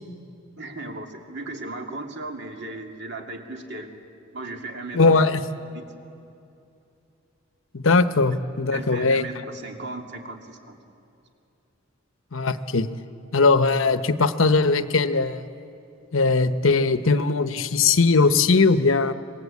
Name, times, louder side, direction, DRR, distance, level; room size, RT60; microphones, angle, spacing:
voice 1, 0.6-3.9 4.3-5.3 5.7-5.9 8.7-10.8, right 2 dB, 60° right, 2 dB, 2.5 m, -36 dB
voice 2, 4.9-5.4 7.7-9.2 12.3-12.9 13.3-15.4 16.1-19.1, left 4 dB, 75° left, 10 dB, 1.0 m, -20 dB
26.0 x 21.0 x 8.5 m, 2.7 s
head